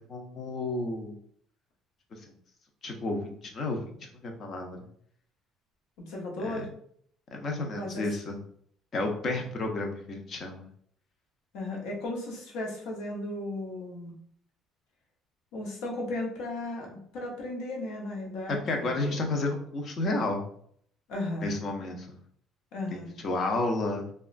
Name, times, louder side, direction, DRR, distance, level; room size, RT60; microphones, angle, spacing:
voice 1, 0.1-1.2 2.8-4.8 6.4-6.6 7.3-8.4 8.9-10.7 18.7-20.5 21.4-22.2 22.9-24.0, left 2 dB, 35° left, 2 dB, 0.5 m, -31 dB
voice 2, 6.0-6.7 7.7-8.1 11.5-14.2 15.5-19.2 21.1-21.5 22.7-23.2, left 2 dB, 80° left, -1 dB, 0.8 m, -35 dB
2.9 x 2.3 x 2.4 m, 0.62 s
cardioid pair, 160°, 0 cm